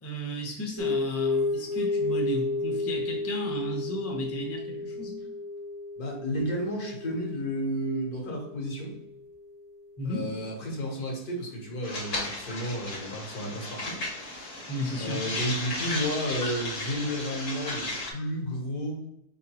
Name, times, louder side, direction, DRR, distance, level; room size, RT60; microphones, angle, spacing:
voice 1, 0.0-5.1 10.0-10.3 14.7-15.2, equal, 15° left, 0 dB, 0.5 m, -34 dB
sound 1, 0.8-9.7, left 3 dB, 70° right, 1.2 m, -32 dB
voice 2, 6.0-8.9 10.0-14.7 15.0-19.0, equal, 75° left, -2 dB, 1.8 m, -32 dB
sound 2, 11.8-18.1, left 2 dB, 45° left, 1.0 m, -35 dB
4.5 x 3.6 x 2.9 m, 0.77 s
omnidirectional pair, 1.7 m